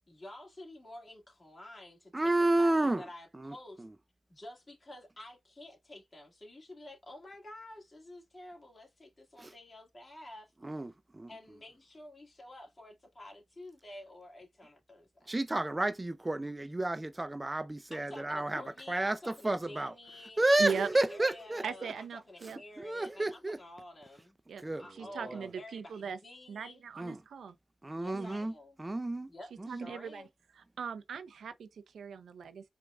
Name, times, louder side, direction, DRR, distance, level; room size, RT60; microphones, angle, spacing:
voice 1, 0.1-3.9 4.3-10.5 11.3-15.3 17.9-20.8 21.1-24.4 24.8-26.8 27.9-28.8 29.3-30.3, left 1 dB, 40° left, 1.9 m, -50 dB
voice 2, 2.1-3.0 3.4-3.5 9.4-9.5 10.6-11.3 15.3-18.6 18.9-19.9 20.4-21.6 22.4-23.6 24.6-24.8 27.0-27.2 27.8-28.5 28.8-29.3 29.6-29.9, right 2 dB, 25° right, 0.4 m, -31 dB
voice 3, 20.6-20.9 21.6-22.6 24.5-24.6 24.9-26.2 26.5-27.5 28.1-28.4 29.7-30.3 30.5-32.7, right 6 dB, 90° right, 0.5 m, -39 dB
4.6 x 2.4 x 2.3 m
cardioid pair, 50°, 0 cm